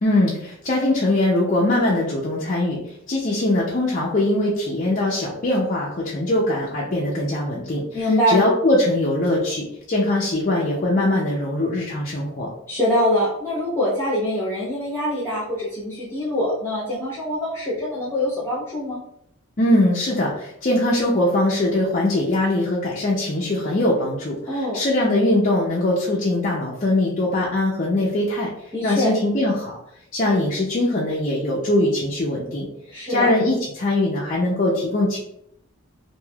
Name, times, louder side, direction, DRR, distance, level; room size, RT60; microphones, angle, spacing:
voice 1, 0.0-2.8 3.1-12.5 19.6-28.5 28.8-29.8 30.1-32.7 33.1-35.2, left 1 dB, 35° left, -5 dB, 0.4 m, -21 dB
voice 2, 7.9-8.4 12.7-19.0 24.5-24.8 28.7-29.1 32.9-33.3, left 1 dB, 10° left, -10 dB, 0.9 m, -24 dB
3.2 x 2.6 x 2.3 m, 0.75 s
head